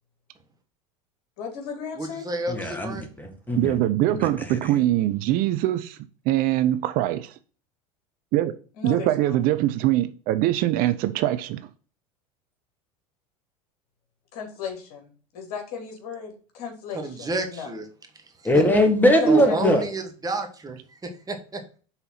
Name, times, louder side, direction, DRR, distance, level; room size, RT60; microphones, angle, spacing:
voice 1, 1.4-2.2 8.8-9.4 14.3-17.7 19.2-19.6, left 6 dB, 55° left, 2.6 m, -35 dB
voice 2, 2.0-3.0 17.0-17.8 18.5-18.6 19.2-21.8, right 2 dB, 20° right, 1.5 m, -30 dB
voice 3, 2.5-4.6 18.4-19.8, equal, 10° left, 1.9 m, -21 dB
voice 4, 3.6-6.0 6.3-7.3 8.3-8.5 8.8-11.6, right 14 dB, 50° right, 0.6 m, -23 dB
5.7 x 4.1 x 5.8 m
hypercardioid pair, 80°, 19 cm